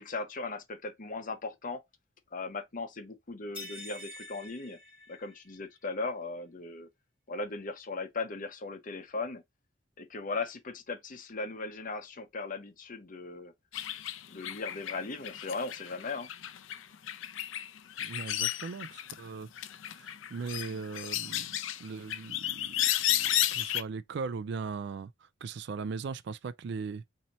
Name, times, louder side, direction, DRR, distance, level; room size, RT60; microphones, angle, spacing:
voice 1, 0.0-1.8 2.3-4.8 5.1-6.9 7.3-9.4 10.0-13.5 14.3-16.3, left 3 dB, 45° left, 0.8 m, -38 dB
sound 1, 3.5-5.7, left 1 dB, 10° right, 2.7 m, -46 dB
sound 2, 13.7-19.3 19.6-23.8, left 13 dB, 85° left, 0.5 m, -33 dB
voice 2, 18.0-19.5 19.9-25.1 25.4-27.0, right 5 dB, 60° right, 0.3 m, -39 dB
4.1 x 2.8 x 3.0 m
head